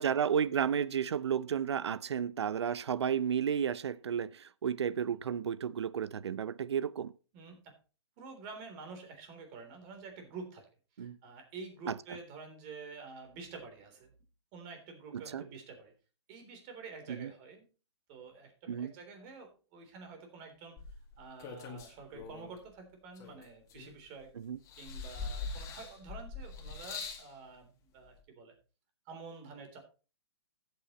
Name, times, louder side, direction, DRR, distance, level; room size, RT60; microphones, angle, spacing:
voice 1, 0.0-7.1 11.0-11.2 11.9-12.0 15.1-15.4 17.1-17.3 18.7-18.9 24.4-24.6, right 8 dB, 70° right, 0.6 m, -32 dB
voice 2, 7.3-7.8 8.2-10.7 11.0-14.1 14.5-15.9 16.3-17.7 18.1-20.8 21.2-24.3 24.8-28.6 29.1-29.8, right 4 dB, 35° right, 3.5 m, -48 dB
sound 1, 20.8-22.6 23.2-24.2 24.7-27.3 28.2-28.3, left 4 dB, 20° left, 2.2 m, -42 dB
14.0 x 8.6 x 3.1 m
hypercardioid pair, 140°, 14 cm